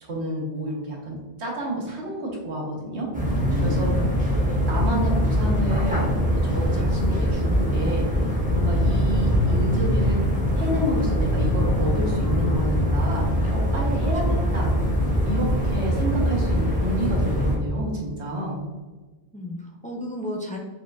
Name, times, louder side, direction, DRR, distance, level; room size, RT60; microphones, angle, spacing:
voice 1, 0.0-3.1 3.6-3.9 4.7-10.3 10.5-14.7 15.3-18.6, equal, 85° right, -1 dB, 1.4 m, -29 dB
sound 1, 3.1-17.6, equal, 10° right, 1.0 m, -22 dB
voice 2, 3.4-4.1 4.5-4.6 19.3-20.6, equal, 10° left, 0 dB, 0.4 m, -33 dB
4.7 x 4.4 x 2.4 m, 1.3 s
omnidirectional pair, 1.1 m